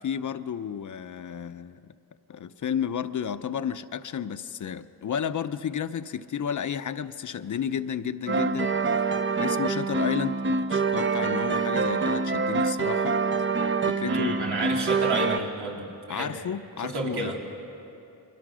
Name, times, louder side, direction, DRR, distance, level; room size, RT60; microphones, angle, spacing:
voice 1, 0.0-1.9 2.3-9.0 9.4-13.2 13.9-14.6 16.1-17.3, left 8 dB, 50° left, 11 dB, 0.7 m, -32 dB
sound 1, 8.3-15.4, right 4 dB, 30° right, 0.7 m, -25 dB
voice 2, 14.0-16.3 16.8-17.4, right 3 dB, 90° right, -1 dB, 3.5 m, -31 dB
29.5 x 23.0 x 6.3 m, 2.7 s
wide cardioid pair, 155°, 38 cm